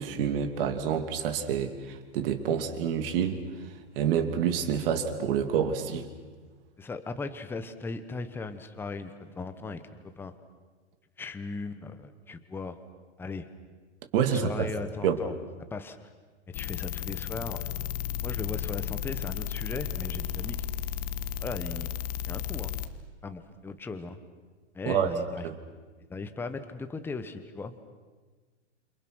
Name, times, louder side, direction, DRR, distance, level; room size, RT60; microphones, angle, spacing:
voice 1, 0.0-3.4 4.0-6.1 14.1-14.7 15.0-15.2 24.9-25.1 25.4-25.6, right 8 dB, 50° right, 7 dB, 2.8 m, -27 dB
voice 2, 6.8-10.3 11.2-12.8 13.2-13.5 14.2-15.3 15.7-16.1 16.5-17.6 18.2-20.8 21.4-21.9 22.3-22.7 23.2-24.2 24.7-25.5 26.1-27.7, left 3 dB, 5° left, 9 dB, 1.0 m, -38 dB
sound 1, 16.5-22.9, left 10 dB, 40° left, 1.3 m, -34 dB
28.5 x 27.5 x 6.2 m, 1.4 s
hypercardioid pair, 150°, 35 cm